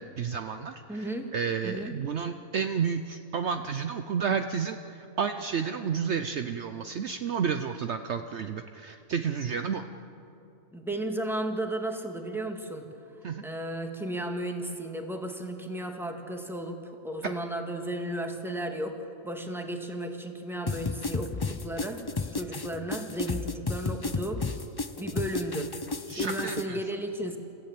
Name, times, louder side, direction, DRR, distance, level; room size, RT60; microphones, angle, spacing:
voice 1, 0.0-9.8 13.2-13.4 26.1-26.8, right 6 dB, 60° right, 8 dB, 0.9 m, -31 dB
voice 2, 0.9-1.3 1.6-1.9 10.7-12.9 13.4-19.0 19.2-22.0 22.3-24.4 25.0-25.7 26.2-27.4, right 1 dB, ahead, 3 dB, 1.9 m, -34 dB
sound 1, 20.7-26.6, left 3 dB, 35° left, 0.3 m, -32 dB
29.0 x 15.0 x 8.7 m, 2.9 s
omnidirectional pair, 1.4 m